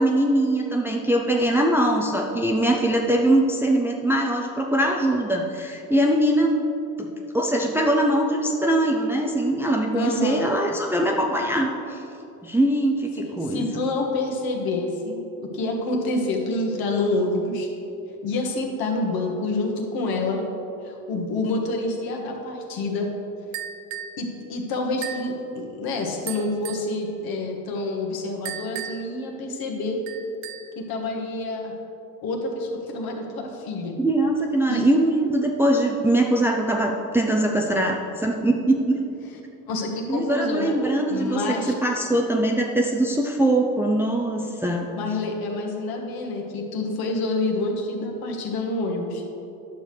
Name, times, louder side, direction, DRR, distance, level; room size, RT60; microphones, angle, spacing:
voice 1, 0.0-6.6 7.0-12.0 12.4-13.6 34.0-39.0 40.1-44.9, right 1 dB, 5° right, 0 dB, 0.6 m, -22 dB
voice 2, 9.9-10.5 13.2-17.7 18.2-20.4 20.8-23.1 24.2-30.0 30.7-31.7 32.2-34.0 34.7-34.9 39.7-40.8 41.1-41.7 45.0-49.2, left 2 dB, 55° left, 1 dB, 1.5 m, -27 dB
Small Cowbell Hits, 23.5-24.2 25.0-25.3 26.3-26.9 28.5-29.2 30.1-30.8, right 9 dB, 65° right, 0.6 m, -35 dB
11.0 x 6.6 x 3.2 m, 2.8 s
hypercardioid pair, 60°, 44 cm